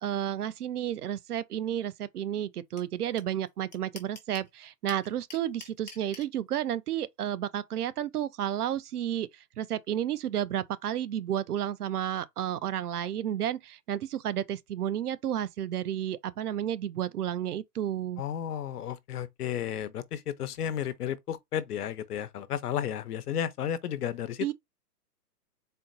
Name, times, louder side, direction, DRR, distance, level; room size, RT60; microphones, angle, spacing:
voice 1, 0.0-9.3 9.6-18.2 24.4-24.5, right 10 dB, 70° right, 0.6 m, -32 dB
sound 1, 2.8-2.9 3.2-3.3 3.5-4.5 4.9-6.3, left 4 dB, 30° left, 0.6 m, -45 dB
voice 2, 18.2-24.5, left 9 dB, 70° left, 0.7 m, -33 dB
4.3 x 2.0 x 3.8 m
hypercardioid pair, 170°, 48 cm